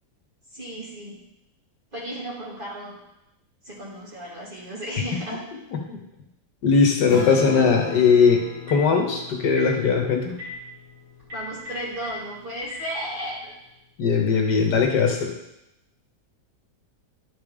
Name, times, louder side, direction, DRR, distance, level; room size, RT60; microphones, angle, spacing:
voice 1, 0.5-1.2 1.9-3.0 3.6-5.4 11.3-13.5, right 1 dB, 30° right, -5 dB, 2.1 m, -34 dB
voice 2, 6.6-10.3 14.0-15.3, left 5 dB, 75° left, 2 dB, 1.7 m, -19 dB
Acoustic guitar / Strum, 7.1-11.9, left 4 dB, 15° left, 2.7 m, -36 dB
Telephone, 8.7-8.9 9.5-9.7 10.3-10.5 11.2-12.1 12.6-12.8, left 4 dB, 75° right, 4.2 m, -37 dB
11.0 x 5.2 x 3.6 m, 0.87 s
omnidirectional pair, 1.9 m